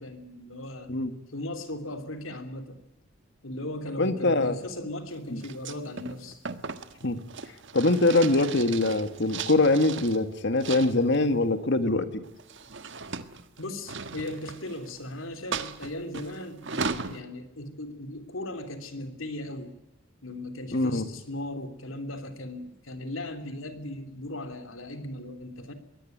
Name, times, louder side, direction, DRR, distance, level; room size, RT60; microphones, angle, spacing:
voice 1, 0.0-0.9 1.3-2.8 3.4-6.4 13.6-19.7 20.2-25.7, left 1 dB, 75° left, 9 dB, 3.2 m, -37 dB
voice 2, 4.0-4.6 5.3-5.4 7.0-7.2 7.7-12.2 20.7-21.1, left 2 dB, 60° left, 10 dB, 1.9 m, -23 dB
sound 1, 5.4-10.2 10.6-11.3 12.2-15.0 15.5-17.2, right 5 dB, 60° right, 1.5 m, -37 dB
23.0 x 17.5 x 9.4 m, 0.93 s
head